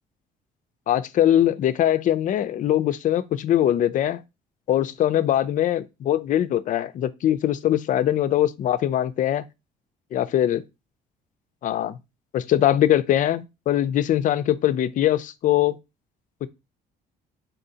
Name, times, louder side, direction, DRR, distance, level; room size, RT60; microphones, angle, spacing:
voice 1, 0.9-4.2 4.7-9.4 10.1-10.6 11.6-12.0 12.3-15.8, left 12 dB, 50° left, 0.4 m, -22 dB
4.1 x 3.8 x 2.7 m
cardioid pair, 110°, 17 cm